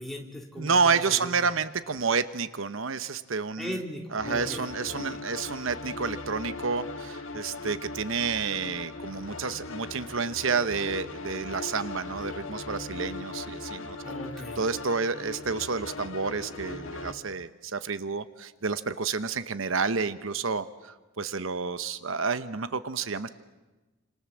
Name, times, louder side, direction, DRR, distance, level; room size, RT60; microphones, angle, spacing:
voice 1, 0.0-1.5 3.6-5.2 14.0-14.6, equal, ahead, 0 dB, 3.4 m, -39 dB
voice 2, 0.6-3.7 4.1-14.0 14.6-23.3, right 5 dB, 70° right, 12 dB, 1.0 m, -30 dB
sound 1, 4.2-17.1, left 3 dB, 75° left, 2.0 m, -39 dB
29.5 x 27.0 x 7.4 m, 1.2 s
head